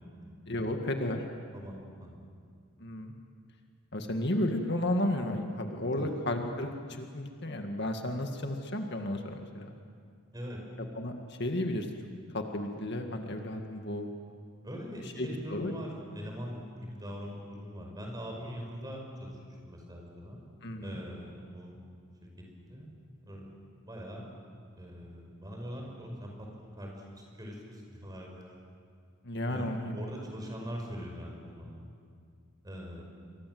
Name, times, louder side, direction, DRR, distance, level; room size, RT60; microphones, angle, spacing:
voice 1, 0.5-1.2 2.8-3.1 3.9-9.7 10.8-11.9 12.3-14.1 15.2-15.7 20.6-20.9 29.2-30.0, left 1 dB, 55° left, 4 dB, 1.9 m, -33 dB
voice 2, 1.5-2.2 5.9-6.1 10.3-10.6 14.6-20.5 20.8-21.8 22.2-22.3 22.6-22.9 23.3-23.5 23.8-24.2 24.8-28.6 29.5-31.8 32.6-33.0, equal, 20° right, 0 dB, 5.7 m, -42 dB
28.5 x 24.0 x 7.9 m, 2.2 s
head